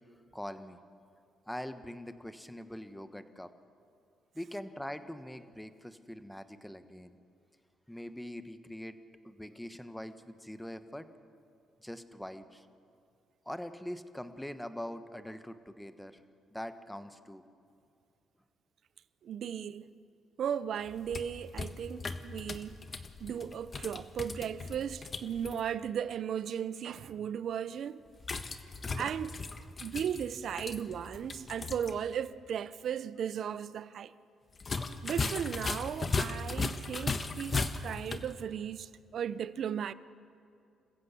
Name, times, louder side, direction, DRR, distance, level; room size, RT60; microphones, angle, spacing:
voice 1, 0.3-0.8 1.5-3.5 4.3-7.1 7.9-9.0 9.2-11.1 11.8-12.7 13.4-16.2 16.5-17.4, left 1 dB, 5° left, 1.2 m, -43 dB
voice 2, 19.2-19.9 20.4-22.8 23.2-28.0 28.9-29.4 29.8-34.1 35.0-39.9, right 8 dB, 65° right, 0.7 m, -36 dB
sound 1, 20.9-25.6 28.2-31.9 32.2-32.3 34.6-38.3, left 4 dB, 35° left, 1.3 m, -37 dB
27.5 x 15.0 x 8.3 m
cardioid pair, 90°, 0 cm